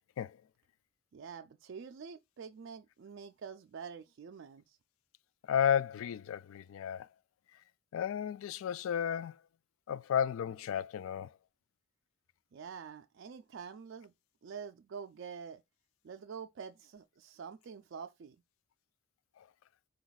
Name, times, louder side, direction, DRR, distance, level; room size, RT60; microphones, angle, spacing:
voice 1, 1.1-4.8 12.5-14.1 14.4-15.6 16.0-18.4, right 6 dB, 65° right, 0.4 m, -46 dB
voice 2, 5.5-7.1 7.9-9.4 9.9-11.3 19.4-19.5, left 8 dB, 85° left, 0.3 m, -33 dB
5.0 x 2.3 x 3.9 m
head